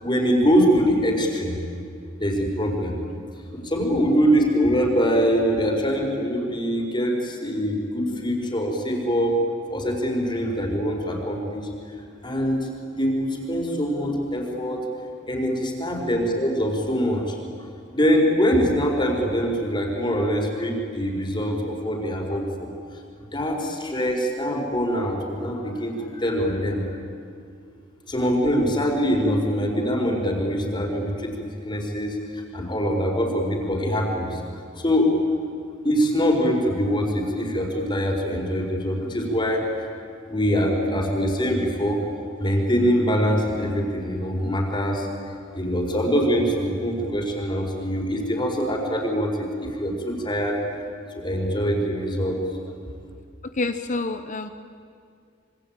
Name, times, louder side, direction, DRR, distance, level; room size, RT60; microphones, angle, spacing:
voice 1, 0.0-1.6 2.2-2.9 3.6-9.4 9.7-11.7 12.2-14.8 15.3-17.4 17.9-22.7 23.3-26.8 28.1-34.4 34.7-35.1 35.8-39.6 40.3-42.0 42.4-45.1 45.5-50.6 51.1-52.4, equal, 25° left, 1 dB, 4.9 m, -23 dB
voice 2, 53.6-54.5, left 3 dB, 40° left, 9 dB, 0.9 m, -27 dB
26.5 x 25.0 x 9.1 m, 2.3 s
head